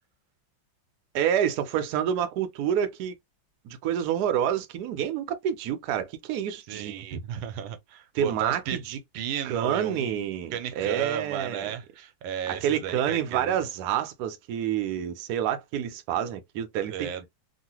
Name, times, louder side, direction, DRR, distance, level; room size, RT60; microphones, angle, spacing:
voice 1, 1.1-3.1 3.6-7.2 8.1-9.0 9.4-11.7 12.5-17.3, right 9 dB, 70° right, 1.0 m, -28 dB
voice 2, 6.7-8.8 9.1-10.2 10.5-13.6 16.9-17.3, right 9 dB, 90° right, 1.4 m, -34 dB
3.1 x 2.4 x 2.8 m
omnidirectional pair, 2.1 m